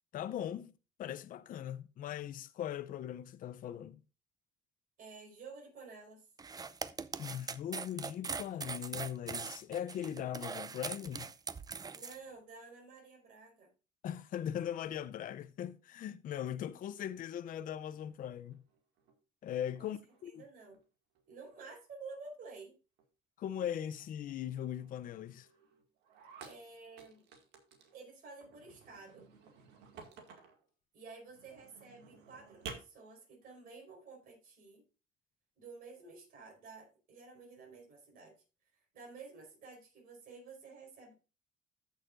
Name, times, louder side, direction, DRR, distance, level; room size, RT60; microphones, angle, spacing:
voice 1, 0.1-0.7 1.0-4.0 7.2-11.3 14.0-18.6 19.4-20.4 23.4-25.5, left 10 dB, 55° left, 0.6 m, -40 dB
voice 2, 5.0-6.3 11.9-13.7 19.8-19.9 20.4-20.8 21.3-22.7 26.4-27.2 27.9-29.3 30.9-34.8 35.6-38.4 38.7-41.1, right 4 dB, 55° right, 4.6 m, -52 dB
sound 1, 6.4-12.2, right 5 dB, 20° right, 0.5 m, -41 dB
sound 2, 17.7-19.2 19.4-20.8 21.1-21.7 22.0-22.3 22.6-22.7 23.0-23.1 23.5-28.0 28.4-30.6 31.2-32.7, right 6 dB, 85° right, 2.0 m, -55 dB
14.5 x 6.5 x 2.5 m
cardioid pair, 110°, 17 cm